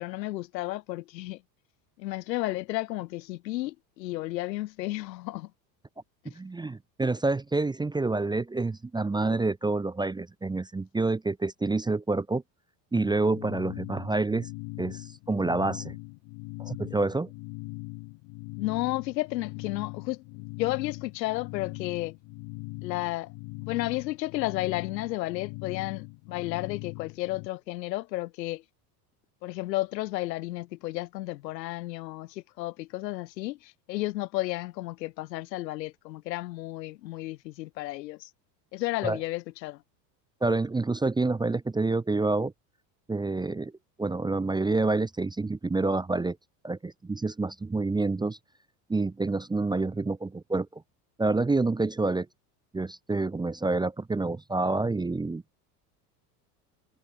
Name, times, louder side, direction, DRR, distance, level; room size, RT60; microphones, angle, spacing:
voice 1, 0.0-1.4 2.0-5.5 6.3-6.4 18.6-20.2 20.6-22.1 22.8-23.3 23.6-28.6 29.4-38.3 38.7-39.8, left 18 dB, 85° left, 2.6 m, -32 dB
voice 2, 6.4-12.4 12.9-14.5 14.8-16.0 16.6-17.3 39.0-39.2 40.4-42.5 43.1-43.7 44.0-46.4 46.6-48.4 48.9-50.8 51.2-52.3 52.7-55.4, right 3 dB, 10° right, 0.8 m, -28 dB
sound 1, 13.0-27.5, left 28 dB, 60° left, 2.1 m, -41 dB
supercardioid pair, 105°, 49 cm